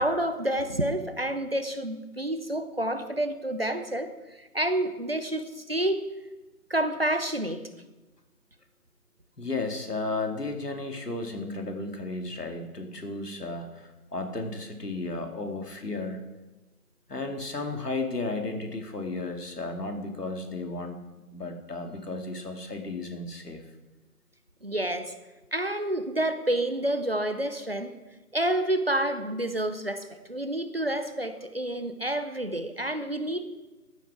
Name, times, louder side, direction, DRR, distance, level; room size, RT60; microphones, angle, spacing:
voice 1, 0.0-4.1 4.4-6.1 6.7-7.7 24.6-25.1 25.5-27.9 28.3-33.5, right 1 dB, 40° right, 9 dB, 0.7 m, -29 dB
voice 2, 9.4-16.2 17.1-21.1 21.3-23.6, left 2 dB, 85° left, 4 dB, 2.2 m, -34 dB
14.5 x 9.2 x 4.9 m, 1.1 s
figure-of-eight pair, 165°, 46 cm